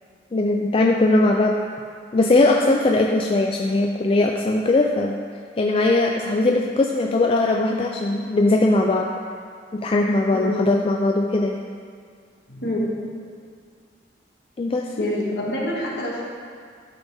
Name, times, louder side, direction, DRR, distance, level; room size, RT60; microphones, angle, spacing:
voice 1, 0.3-1.6 2.1-5.2 5.6-9.1 9.7-11.6 14.6-14.9, left 2 dB, 30° left, 0 dB, 0.3 m, -20 dB
voice 2, 12.5-12.8 15.0-16.2, left 1 dB, 65° left, -5 dB, 1.6 m, -26 dB
12.5 x 4.1 x 3.5 m, 2.1 s
head